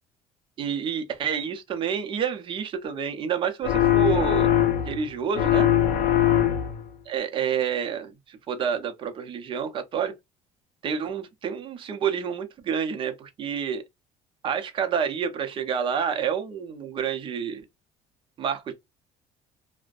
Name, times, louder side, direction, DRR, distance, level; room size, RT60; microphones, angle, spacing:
voice 1, 0.6-4.5 4.8-5.7 7.1-10.1 10.8-13.8 14.4-17.6 18.4-18.7, right 7 dB, 35° right, 0.6 m, -28 dB
sound 1, 3.6-5.0 5.3-6.9, left 11 dB, 80° left, 0.6 m, -21 dB
2.5 x 2.1 x 2.3 m
cardioid pair, 150°, 15 cm